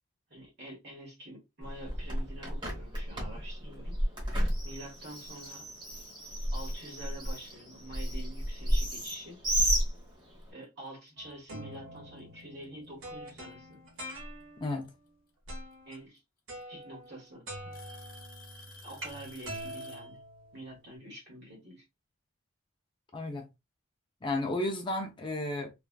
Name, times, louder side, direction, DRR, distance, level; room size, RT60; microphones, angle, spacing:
voice 1, 0.3-4.0 4.6-5.7 6.5-9.4 10.5-13.8 15.8-16.2 16.7-17.8 18.8-20.2 20.5-21.8, right 1 dB, 55° right, 1.6 m, -47 dB
Bird, 1.6-10.5, equal, 20° right, 0.9 m, -32 dB
Alarm / Tick-tock, 10.0-10.1 11.3-11.4 12.6-13.1 14.8-14.9 16.2-16.3 16.6-17.1 17.7-20.2, left 2 dB, 45° left, 0.8 m, -53 dB
sound 1, 11.2-14.8 15.5-15.9 16.5-17.2 17.5-21.0, right 1 dB, 75° right, 1.3 m, -45 dB
voice 2, 14.6-14.9 23.1-23.5 24.2-25.7, left 2 dB, 25° left, 0.4 m, -33 dB
3.2 x 2.4 x 2.2 m
head